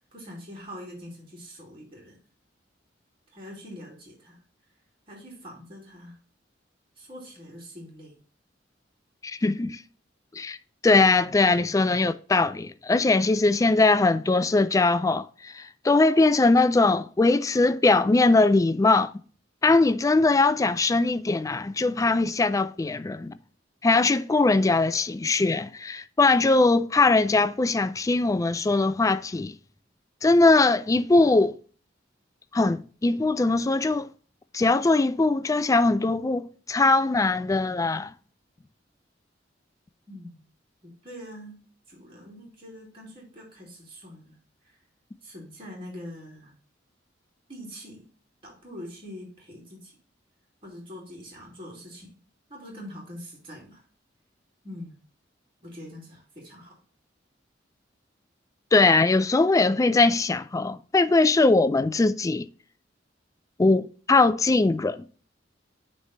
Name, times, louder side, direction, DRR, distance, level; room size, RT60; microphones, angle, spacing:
voice 1, 0.1-2.2 3.3-4.4 5.1-6.2 7.0-8.2 40.1-40.4 40.8-41.6 41.9-44.3 44.6-44.8 45.2-46.5 47.5-48.0 48.4-49.9 50.6-52.1 52.5-53.8 54.6-55.0 55.6-56.8, equal, 30° right, 2.5 m, -43 dB
voice 2, 9.2-9.8 10.3-10.6 10.8-19.1 19.6-23.3 23.8-29.5 30.2-31.6 32.5-34.1 34.5-38.1 58.7-62.5 63.6-65.1, left 3 dB, 20° left, 0.3 m, -21 dB
9.2 x 3.3 x 4.1 m
head